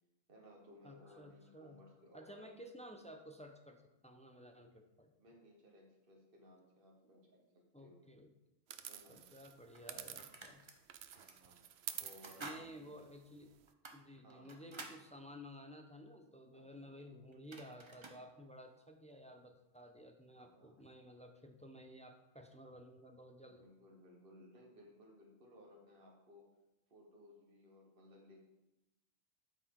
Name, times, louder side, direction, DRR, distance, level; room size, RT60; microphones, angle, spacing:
voice 1, 0.3-2.6 5.2-8.0 8.9-9.3 11.1-11.6 12.0-12.9 14.2-14.7 16.5-17.1 20.4-20.9 23.4-26.5 26.9-28.4, equal, 55° right, -1 dB, 1.5 m, -61 dB
voice 2, 0.8-1.8 2.1-5.1 7.7-8.3 9.1-10.6 12.4-13.5 13.9-23.7, equal, 10° left, 4 dB, 0.6 m, -54 dB
sound 1, 8.7-10.6 10.9-13.7, right 10 dB, 75° right, 0.8 m, -49 dB
sound 2, 9.0-9.1 9.7-10.8 11.1-11.4 11.9-12.6 13.0-13.1 13.7-15.0 17.0-17.1 17.3-18.2, right 3 dB, 30° right, 0.8 m, -52 dB
12.5 x 5.2 x 3.7 m, 0.93 s
omnidirectional pair, 1.1 m